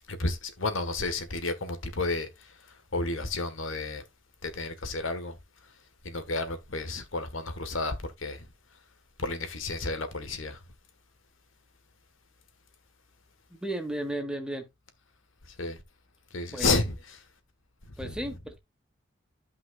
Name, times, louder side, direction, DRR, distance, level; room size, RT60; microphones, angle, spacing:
voice 1, 0.1-4.0 4.4-5.4 5.6-5.8 6.0-8.5 9.2-10.6 15.4-15.8 16.3-17.2 17.9-18.4, left 3 dB, 90° left, 1.5 m, -32 dB
voice 2, 13.5-14.6 16.5-16.7 18.0-18.6, right 1 dB, 5° right, 1.3 m, -34 dB
12.0 x 5.7 x 2.4 m
head